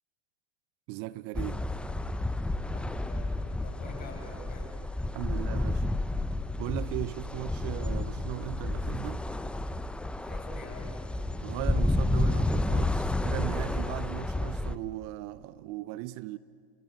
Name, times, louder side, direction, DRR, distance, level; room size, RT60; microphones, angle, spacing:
voice 1, 0.9-1.7 5.1-5.9 6.6-9.3 11.4-16.4, right 17 dB, 45° right, 0.8 m, -38 dB
sound 1, 1.3-14.8, left 2 dB, 5° left, 0.7 m, -31 dB
voice 2, 2.7-4.7 10.2-11.0, left 3 dB, 30° left, 7.2 m, -46 dB
29.5 x 22.5 x 7.7 m
hypercardioid pair, 115°, 31 cm